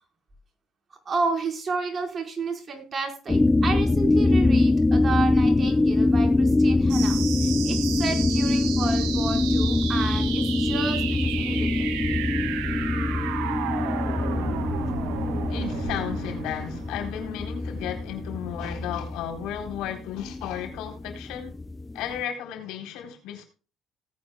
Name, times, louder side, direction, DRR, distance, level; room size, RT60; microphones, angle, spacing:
voice 1, 1.0-11.9 18.6-18.7, right 4 dB, 40° right, 4.9 m, -32 dB
sound 1, 3.3-22.2, left 2 dB, 20° left, 0.5 m, -24 dB
sound 2, 6.9-17.9, right 10 dB, 90° right, 2.4 m, -33 dB
voice 2, 15.5-21.5 21.9-23.4, left 10 dB, 80° left, 4.0 m, -34 dB
18.5 x 9.4 x 2.3 m
supercardioid pair, 85°, 0 cm